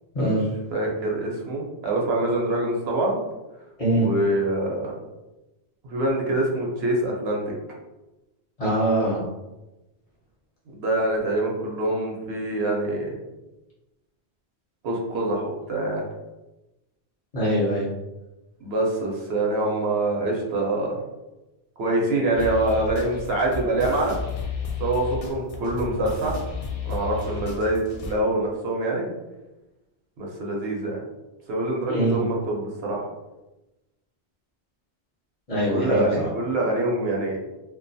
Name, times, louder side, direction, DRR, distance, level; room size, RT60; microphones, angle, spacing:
voice 1, 0.1-0.5 3.8-4.1 8.6-9.2 17.3-17.9 31.9-32.2 35.5-36.3, right 1 dB, 40° left, -7 dB, 0.8 m, -23 dB
voice 2, 0.7-3.2 3.9-4.9 5.8-7.5 10.7-13.1 14.8-16.1 18.6-21.0 21.8-24.2 24.8-26.4 26.9-29.1 30.2-31.0 31.5-33.1 35.7-37.4, right 1 dB, 70° right, -1 dB, 0.8 m, -25 dB
sound 1, 22.3-28.2, left 4 dB, 60° left, 0.3 m, -33 dB
2.3 x 2.2 x 2.5 m, 1.0 s
omnidirectional pair, 1.1 m